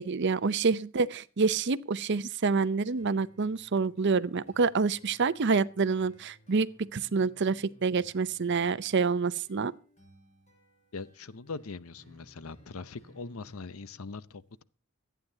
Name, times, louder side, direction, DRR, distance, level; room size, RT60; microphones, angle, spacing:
voice 1, 0.0-9.7, right 4 dB, 55° right, 0.6 m, -27 dB
sound 1, 3.0-14.0, equal, 35° left, 6.8 m, -60 dB
voice 2, 10.9-14.6, left 4 dB, 85° left, 0.8 m, -41 dB
25.5 x 9.4 x 2.8 m
head